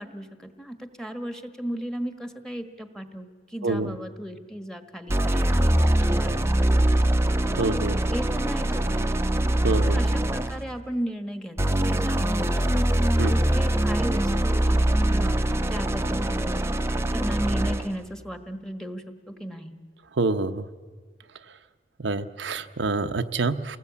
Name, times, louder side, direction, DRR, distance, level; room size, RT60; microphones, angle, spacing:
voice 1, 0.0-7.0 8.1-9.2 9.8-12.9 13.3-15.4 15.7-16.7 17.1-19.8, equal, 5° left, 8 dB, 1.4 m, -35 dB
voice 2, 3.6-4.0 7.6-8.0 9.6-10.0 13.2-13.3 20.2-20.6 22.0-23.8, right 3 dB, 85° right, 8 dB, 0.8 m, -26 dB
sound 1, 5.1-10.7 11.6-18.0, right 1 dB, 15° right, 0.8 m, -23 dB
28.5 x 19.0 x 8.4 m, 1.5 s
head